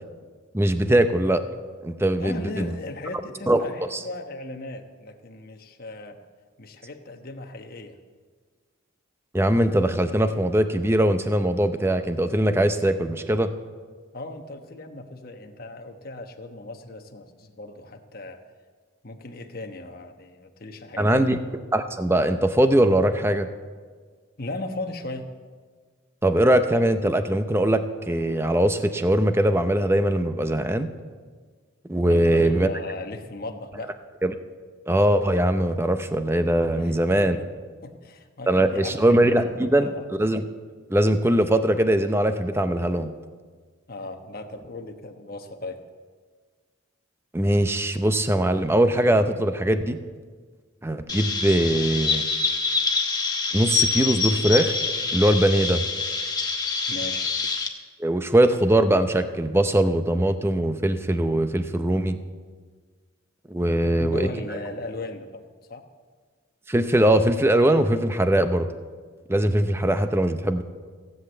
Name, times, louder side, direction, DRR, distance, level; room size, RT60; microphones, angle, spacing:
voice 1, 0.5-1.4 1.8-2.7 3.5-3.6 9.3-13.5 21.0-21.4 21.7-23.5 26.2-30.9 31.9-32.7 34.2-34.3 34.9-37.4 38.5-39.9 40.2-40.5 40.9-43.1 47.3-50.0 50.8-52.2 53.5-54.8 55.1-55.8 58.0-62.2 63.5-64.3 66.7-68.7 69.3-70.6, right 1 dB, 10° right, 9 dB, 0.6 m, -21 dB
voice 2, 2.2-6.2 6.6-8.0 14.1-18.4 19.0-21.3 24.4-25.3 32.1-33.9 36.8-37.5 37.8-40.1 43.9-45.8 56.9-57.3 63.8-65.4 65.7-65.8, left 2 dB, 45° left, 5 dB, 1.1 m, -37 dB
Chirp tweet, 51.1-57.7, left 4 dB, 20° left, 1.0 m, -26 dB
16.5 x 8.0 x 7.8 m, 1.5 s
head